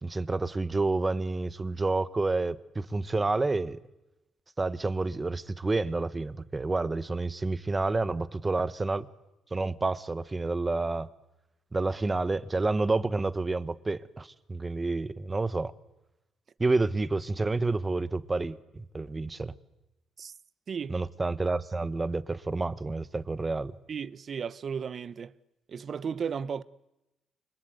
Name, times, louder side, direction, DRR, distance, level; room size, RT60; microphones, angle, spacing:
voice 1, 0.0-3.8 4.6-9.1 9.5-11.1 11.7-15.7 16.6-19.5 20.9-23.7, right 3 dB, 25° right, 1.3 m, -29 dB
voice 2, 20.7-21.0 23.9-25.3 25.7-26.6, right 6 dB, 50° right, 0.9 m, -34 dB
29.0 x 24.5 x 8.2 m
cardioid pair, 90°, 0 cm